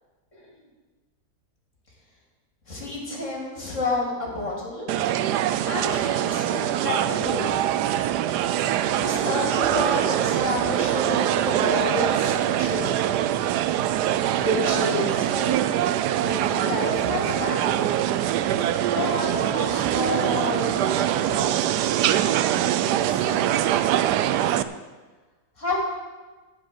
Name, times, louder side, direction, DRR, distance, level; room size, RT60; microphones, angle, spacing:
voice 1, 0.3-0.7 2.7-4.9 5.7-7.5 8.9-13.3 14.3-15.6 16.2-17.9 18.9-21.4 22.8-23.8 25.6-25.8, left 1 dB, 45° left, -2 dB, 3.2 m, -30 dB
sound 1, 4.9-24.6, right 11 dB, 90° right, 1.2 m, -23 dB
15.0 x 5.3 x 9.0 m, 1.3 s
omnidirectional pair, 1.7 m